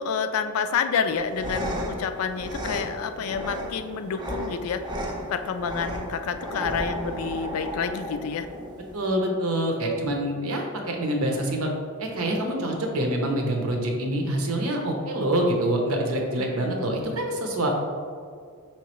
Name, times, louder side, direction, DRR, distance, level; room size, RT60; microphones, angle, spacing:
voice 1, 0.0-4.8 5.3-8.5 16.6-16.7, left 6 dB, 70° left, 9 dB, 0.3 m, -28 dB
sound 1, 1.1-9.1, equal, 20° right, 0.5 m, -34 dB
voice 2, 8.9-11.7 12.0-17.7, right 1 dB, 70° right, 1 dB, 0.8 m, -26 dB
5.7 x 3.1 x 3.0 m, 2.1 s
head